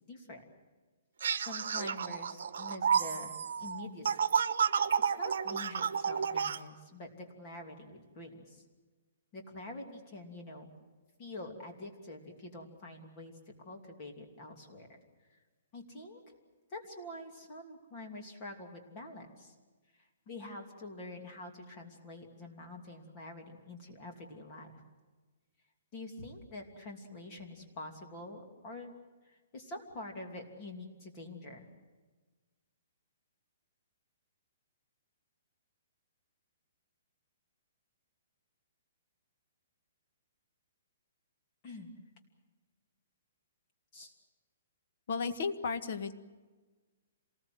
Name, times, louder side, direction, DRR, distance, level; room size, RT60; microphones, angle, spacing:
voice 1, 0.1-0.4 1.4-4.2 5.0-8.6 9.3-10.7 11.2-13.3 13.6-14.9 15.7-16.2 16.7-19.5 19.9-24.8 25.9-28.9 29.2-31.7 41.6-41.9 43.9-44.1, left 2 dB, 25° left, 2 dB, 2.8 m, -46 dB
sound 1, 1.2-6.6, right 7 dB, 65° right, 1.2 m, -31 dB
voice 2, 45.1-46.2, left 5 dB, 50° left, 9 dB, 1.6 m, -34 dB
27.0 x 20.0 x 7.9 m, 1.3 s
hypercardioid pair, 175°, 0 cm